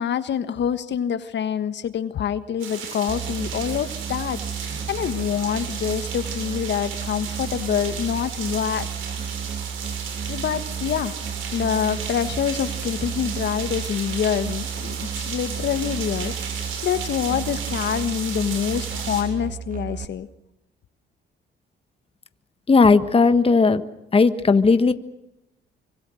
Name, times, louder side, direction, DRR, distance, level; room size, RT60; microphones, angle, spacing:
voice 1, 0.0-8.9 10.3-11.1 11.5-20.3, left 8 dB, 65° left, 11 dB, 1.5 m, -26 dB
sound 1, 2.6-19.2, right 6 dB, 85° right, 7.1 m, -34 dB
Musical instrument, 3.1-20.0, right 7 dB, 45° right, 1.9 m, -33 dB
voice 2, 22.7-23.8 24.1-24.9, left 4 dB, 30° left, 10 dB, 1.6 m, -16 dB
27.0 x 25.0 x 6.4 m, 0.87 s
cardioid pair, 90°, 20 cm